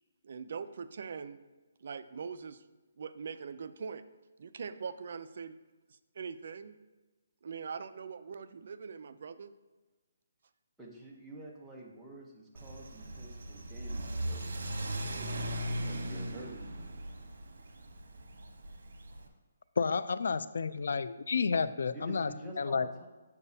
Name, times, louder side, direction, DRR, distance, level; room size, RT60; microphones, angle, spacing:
voice 1, 0.2-1.4 1.8-2.6 3.0-4.0 4.4-5.6 5.9-6.8 7.4-9.5, right 6 dB, 50° right, 12 dB, 0.4 m, -42 dB
voice 2, 10.8-14.5 15.1-16.9 21.9-23.1, right 2 dB, 5° right, -5 dB, 0.8 m, -49 dB
Car / Accelerating revving vroom, 12.6-19.3, right 1 dB, 80° right, 1.0 m, -38 dB
voice 3, 19.8-22.3 22.6-22.9, left 5 dB, 65° left, 14 dB, 0.3 m, -30 dB
7.0 x 6.7 x 2.7 m, 1.2 s
hypercardioid pair, 170°, 0 cm